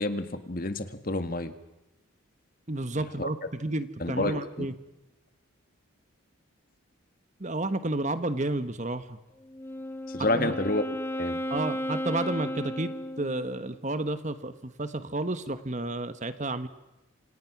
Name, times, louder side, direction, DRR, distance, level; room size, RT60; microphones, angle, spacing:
voice 1, 0.0-1.5 3.2-3.3 4.0-4.7 10.1-10.8 11.2-11.4, left 2 dB, 40° left, 9 dB, 1.8 m, -29 dB
voice 2, 2.7-4.7 7.4-9.2 10.3-10.5 11.5-16.7, right 2 dB, 35° right, 11 dB, 1.3 m, -31 dB
Wind instrument woodwind instrument, 9.4-13.7, left 1 dB, 10° left, 0.9 m, -34 dB
28.5 x 27.5 x 6.1 m, 0.99 s
head